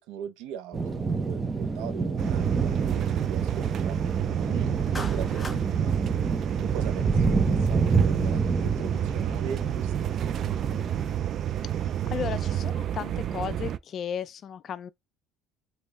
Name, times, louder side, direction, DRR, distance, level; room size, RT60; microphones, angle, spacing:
voice 1, 0.0-3.9 4.4-6.0 6.6-10.4, right 9 dB, 80° right, 0.9 m, -40 dB
sound 1, 0.7-11.2, right 4 dB, 20° right, 0.8 m, -28 dB
sound 2, 2.2-13.8, right 11 dB, 50° right, 0.4 m, -29 dB
Clapping, 4.9-5.6, left 2 dB, 15° left, 0.7 m, -37 dB
voice 2, 11.8-14.9, left 8 dB, 45° left, 0.3 m, -35 dB
5.1 x 2.6 x 3.5 m
cardioid pair, 115°, 0 cm